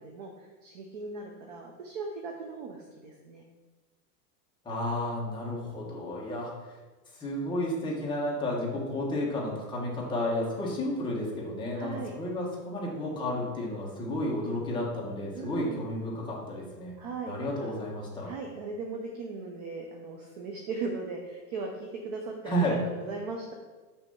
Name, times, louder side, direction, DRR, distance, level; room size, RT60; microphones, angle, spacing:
voice 1, 0.0-3.5 11.7-12.1 15.3-15.8 17.0-17.7 18.2-23.5, right 4 dB, 30° right, 1 dB, 0.4 m, -38 dB
voice 2, 4.6-6.5 7.1-17.0 17.3-18.3 22.4-22.8, left 1 dB, 10° left, -4 dB, 1.1 m, -32 dB
5.9 x 3.4 x 5.4 m, 1.3 s
supercardioid pair, 150°, 46 cm